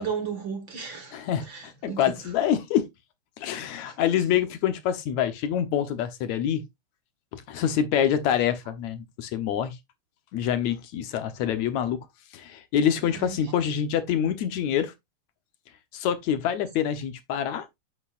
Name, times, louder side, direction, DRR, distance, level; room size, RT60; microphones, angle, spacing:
voice 1, 0.0-2.3 3.9-4.0 13.0-13.5, right 6 dB, 50° right, 1.9 m, -35 dB
voice 2, 1.1-2.9 3.4-6.6 7.3-9.8 10.3-12.0 12.3-14.9 15.9-17.8, left 9 dB, 75° left, 2.3 m, -26 dB
8.6 x 7.8 x 2.5 m
omnidirectional pair, 3.4 m